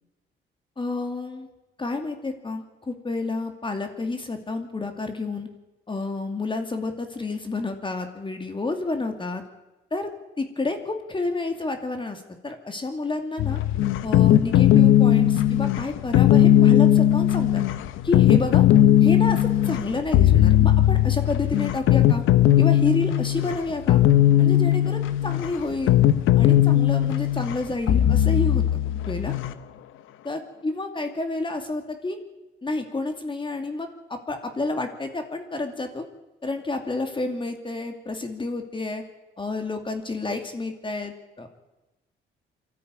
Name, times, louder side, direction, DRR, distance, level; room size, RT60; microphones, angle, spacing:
voice 1, 0.8-1.5 1.8-5.5 5.9-9.4 9.9-10.1 10.4-13.6 14.0-17.6 18.0-18.6 19.0-22.2 22.6-24.0 24.4-26.0 26.4-28.6 29.1-29.3 30.2-32.2 32.6-36.1 36.4-39.0 39.4-41.5, left 3 dB, 25° left, 6 dB, 2.5 m, -29 dB
sound 1, 13.4-29.5, left 12 dB, 90° left, 0.9 m, -18 dB
23.5 x 13.5 x 9.6 m, 1.1 s
cardioid pair, 90°, 20 cm